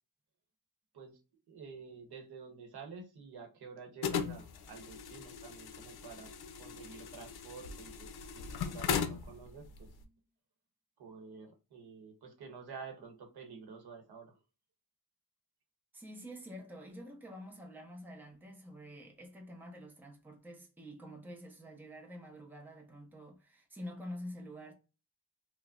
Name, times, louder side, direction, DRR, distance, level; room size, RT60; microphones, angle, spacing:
voice 1, 1.5-10.2 11.0-14.4, right 5 dB, 80° right, 1.0 m, -50 dB
sound 1, 4.0-10.0, left 7 dB, 75° left, 0.6 m, -38 dB
voice 2, 15.9-24.7, equal, 5° right, 0.6 m, -48 dB
4.7 x 2.1 x 2.4 m
wide cardioid pair, 170°, 38 cm